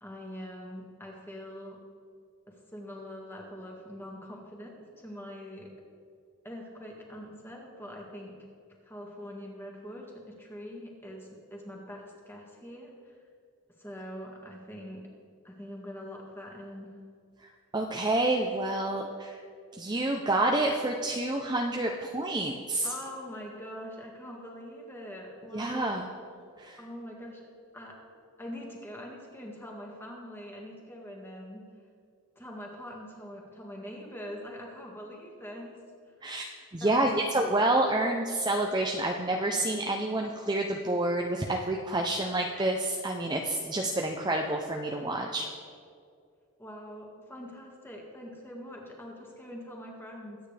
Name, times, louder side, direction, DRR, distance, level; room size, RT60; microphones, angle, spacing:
voice 1, 0.0-1.8 2.5-5.7 6.4-8.5 8.8-13.1 13.8-15.0 15.4-16.9 22.8-26.0 26.8-27.4 27.7-27.9 28.4-31.7 32.4-35.8 36.1-36.2 36.8-37.2 46.6-50.4, equal, 10° left, -1 dB, 1.8 m, -43 dB
voice 2, 17.7-19.4 19.8-22.9 25.5-26.1 26.6-26.8 36.2-45.5, right 2 dB, 20° right, 1 dB, 0.6 m, -28 dB
22.5 x 9.0 x 3.4 m, 2.3 s
head